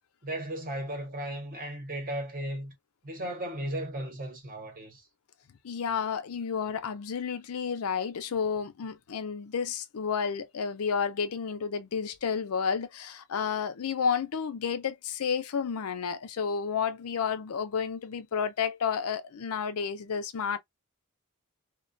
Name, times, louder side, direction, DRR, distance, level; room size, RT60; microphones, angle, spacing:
voice 1, 0.2-2.7 3.0-5.1, right 1 dB, 40° right, 0.9 m, -35 dB
voice 2, 5.6-20.6, left 6 dB, 75° left, 0.5 m, -31 dB
2.3 x 2.2 x 2.5 m
head